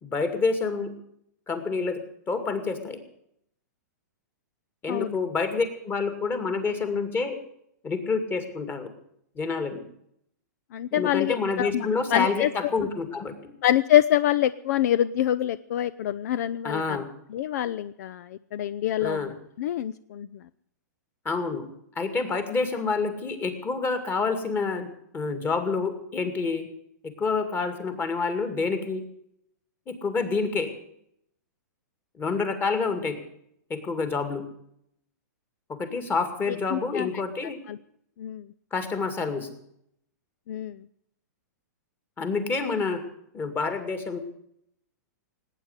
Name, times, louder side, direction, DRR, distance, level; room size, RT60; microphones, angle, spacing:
voice 1, 0.0-0.9 1.5-2.0 2.3-3.0 4.8-7.4 7.8-8.9 9.4-9.8 10.9-13.5 16.6-17.1 19.0-19.3 21.2-21.7 22.0-26.7 27.0-29.0 29.9-30.7 32.2-33.2 33.7-34.4 35.7-37.6 38.7-39.5 42.2-43.0 43.3-44.2, left 4 dB, 20° left, 9 dB, 2.3 m, -28 dB
voice 2, 10.7-12.5 13.6-17.0 17.3-19.3 19.6-20.3 36.5-37.1 37.7-37.8 38.2-38.5 40.5-40.8, left 12 dB, 60° left, 17 dB, 0.5 m, -25 dB
18.0 x 9.2 x 8.1 m, 0.73 s
hypercardioid pair, 130°, 10 cm